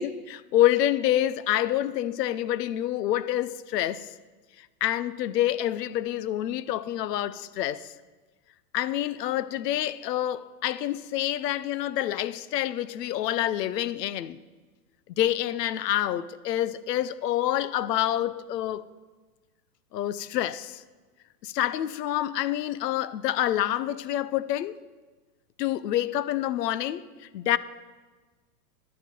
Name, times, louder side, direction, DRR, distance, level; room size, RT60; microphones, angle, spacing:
voice 1, 0.0-4.1 4.8-7.9 8.7-14.4 15.2-18.9 19.9-20.8 21.4-24.7 25.6-27.0 27.3-27.6, left 12 dB, 75° left, 0.7 m, -27 dB
11.5 x 9.2 x 5.3 m
supercardioid pair, 165°, 49 cm